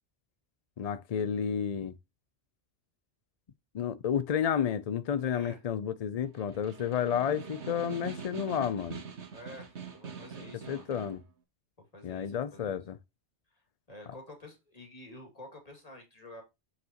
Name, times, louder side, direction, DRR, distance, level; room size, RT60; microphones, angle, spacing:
voice 1, 0.8-1.9 3.7-9.0 10.7-11.2 12.0-13.0, left 8 dB, 55° left, 0.4 m, -31 dB
voice 2, 5.2-5.7 9.3-10.9 11.9-12.8 13.5-13.6 13.9-16.4, left 1 dB, 35° left, 2.4 m, -49 dB
Snare drum, 6.2-11.2, right 6 dB, 75° right, 1.5 m, -44 dB
7.9 x 5.9 x 2.9 m
omnidirectional pair, 1.2 m